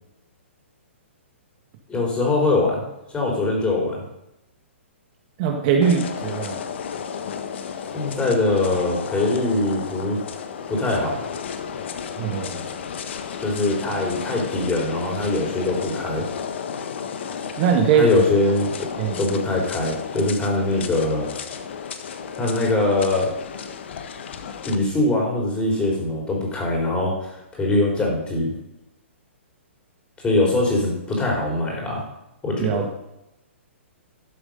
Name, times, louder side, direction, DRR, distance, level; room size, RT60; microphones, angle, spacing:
voice 1, 1.9-2.8 3.1-4.0 7.9-10.2 10.7-11.2 13.4-16.3 17.9-18.9 19.2-21.3 22.4-23.3 24.6-28.5 30.2-32.1 32.4-32.9, left 2 dB, 15° left, -1 dB, 4.1 m, -22 dB
voice 2, 5.4-6.6 12.2-12.6 17.6-18.3 19.0-19.2 32.6-32.9, right 7 dB, 40° right, 3 dB, 1.7 m, -21 dB
sound 1, 5.8-24.8, left 7 dB, 60° left, 1.3 m, -33 dB
13.0 x 7.1 x 5.4 m, 0.89 s
hypercardioid pair, 135°, 7 cm